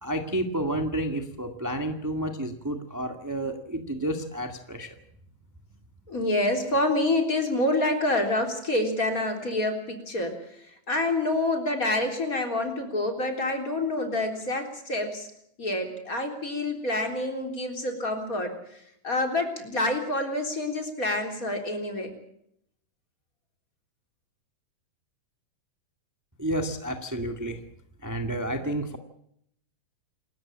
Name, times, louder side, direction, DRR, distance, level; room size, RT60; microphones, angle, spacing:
voice 1, 0.0-4.9 26.4-27.6 28.0-29.0, right 1 dB, 10° right, 5 dB, 1.0 m, -30 dB
voice 2, 6.1-10.4 10.9-15.3 15.6-18.5 19.0-22.1, left 2 dB, 25° left, 4 dB, 3.9 m, -27 dB
28.0 x 14.0 x 8.7 m, 0.72 s
omnidirectional pair, 3.7 m